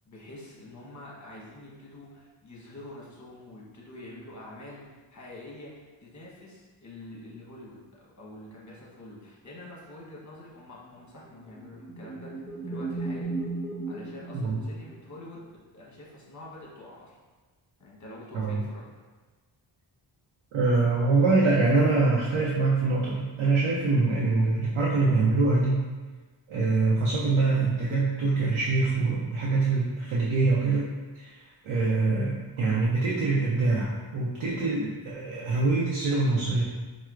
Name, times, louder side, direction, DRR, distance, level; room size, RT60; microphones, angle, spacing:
voice 1, 0.0-4.8 5.1-7.8 8.2-13.3 13.9-17.2 17.8-19.0, left 1 dB, 35° left, -5 dB, 1.0 m, -46 dB
sound 1, 11.3-15.3, right 3 dB, 5° right, 0.6 m, -35 dB
voice 2, 20.5-25.9 26.5-36.6, right 3 dB, 75° right, -4 dB, 0.6 m, -24 dB
4.4 x 2.0 x 2.4 m, 1.3 s
cardioid pair, 65°, 48 cm